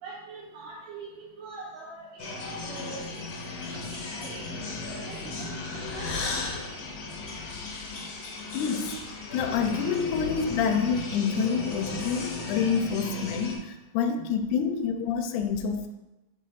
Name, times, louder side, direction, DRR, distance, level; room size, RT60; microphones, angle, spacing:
voice 1, 0.0-3.2 3.8-4.4 5.0-6.4 7.3-7.4 8.0-8.1 14.2-14.3, right 4 dB, 70° right, -5 dB, 2.3 m, -43 dB
sound 1, 2.2-13.6, left 3 dB, 55° left, 1.7 m, -35 dB
voice 2, 8.5-9.0 9.3-15.9, left 6 dB, 85° left, 6 dB, 2.1 m, -27 dB
5.2 x 4.2 x 5.5 m, 0.98 s
omnidirectional pair, 3.5 m